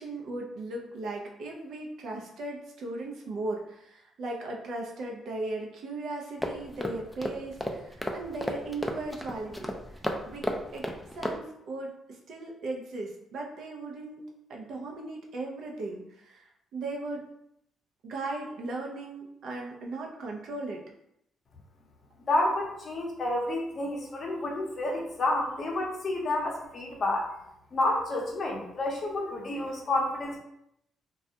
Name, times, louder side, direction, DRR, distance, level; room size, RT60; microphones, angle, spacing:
voice 1, 0.0-9.7 10.2-10.5 10.7-10.9 11.2-14.2 14.5-17.2 18.0-20.8, right 2 dB, 70° right, -1 dB, 0.5 m, -37 dB
sound 1, 6.4-11.4, equal, 5° left, 0.3 m, -34 dB
voice 2, 22.3-27.3 27.7-30.4, left 1 dB, 50° left, 0 dB, 0.6 m, -29 dB
2.3 x 2.1 x 2.7 m, 0.79 s
cardioid pair, 90°, 0 cm